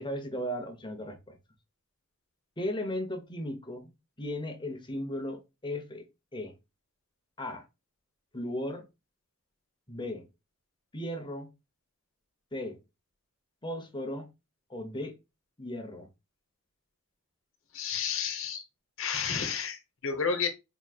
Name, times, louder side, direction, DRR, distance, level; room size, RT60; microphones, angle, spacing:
voice 1, 0.0-1.4 2.6-3.9 4.2-6.5 7.4-7.7 8.3-8.9 9.9-10.3 10.9-11.5 12.5-12.8 13.6-14.3 14.7-15.2 15.6-16.1, left 1 dB, 20° left, 0.9 m, -36 dB
voice 2, 17.7-18.6 19.0-20.5, left 6 dB, 60° left, 1.0 m, -31 dB
4.7 x 3.1 x 2.3 m
head